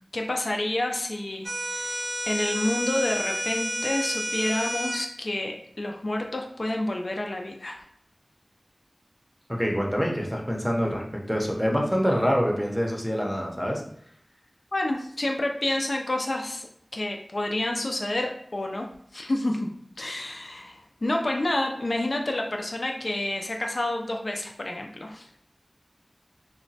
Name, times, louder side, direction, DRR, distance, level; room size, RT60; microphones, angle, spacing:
voice 1, 0.1-7.8 14.7-19.7 20.0-25.3, left 1 dB, 65° left, 2 dB, 0.3 m, -29 dB
sound 1, 1.4-5.0, equal, 60° right, 0.5 m, -30 dB
voice 2, 9.5-13.8, equal, ahead, -1 dB, 0.6 m, -26 dB
2.9 x 2.1 x 2.7 m, 0.67 s
wide cardioid pair, 40°, 0 cm